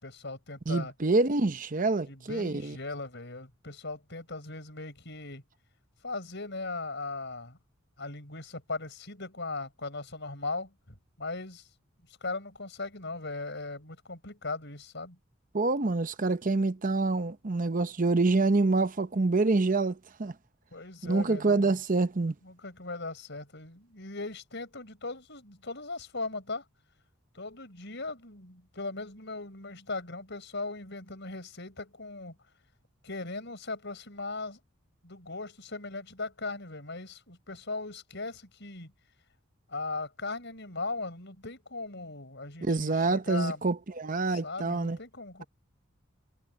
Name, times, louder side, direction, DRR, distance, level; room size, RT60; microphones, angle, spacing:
voice 1, 0.0-0.9 2.1-5.4 6.0-7.6 8.0-11.7 12.2-15.2 20.7-21.8 22.4-26.6 27.3-32.4 33.0-34.6 35.0-38.9 39.7-43.6 44.3-45.5, left 3 dB, 60° left, 6.4 m, -38 dB
voice 2, 0.7-2.8 15.5-20.3 21.0-22.3 42.6-45.0, right 3 dB, 40° right, 0.8 m, -26 dB
head